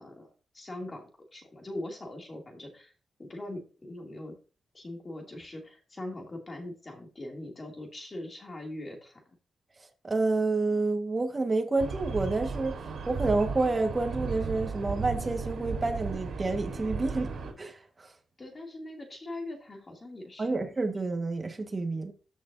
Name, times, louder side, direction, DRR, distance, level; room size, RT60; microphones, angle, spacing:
voice 1, 0.0-2.9 3.2-4.4 4.7-9.2 18.4-20.6, left 1 dB, 25° left, 2.6 m, -41 dB
voice 2, 10.0-12.8 13.1-17.3 17.6-18.1 20.4-22.1, right 3 dB, 25° right, 1.5 m, -29 dB
sound 1, 11.8-17.5, right 5 dB, 75° right, 3.9 m, -35 dB
14.0 x 6.1 x 2.7 m
wide cardioid pair, 155°, 0 cm